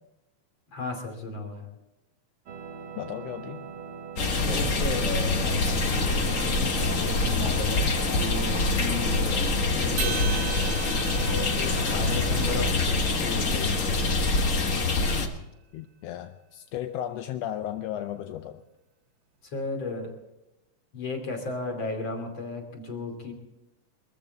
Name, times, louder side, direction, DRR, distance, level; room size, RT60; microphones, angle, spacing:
voice 1, 0.7-1.7 4.5-10.2 11.0-14.0 19.5-20.1 20.9-23.3, left 3 dB, 40° left, 3 dB, 3.4 m, -35 dB
sound 1, 2.5-12.8, right 2 dB, 55° right, 1.9 m, -40 dB
voice 2, 2.9-3.6 15.7-18.6, left 11 dB, 75° left, 8 dB, 1.5 m, -35 dB
sound 2, 4.2-15.3, left 3 dB, 60° left, 0.8 m, -25 dB
sound 3, 10.0-14.4, right 10 dB, 75° right, 1.6 m, -39 dB
23.0 x 14.5 x 3.9 m, 0.96 s
omnidirectional pair, 3.3 m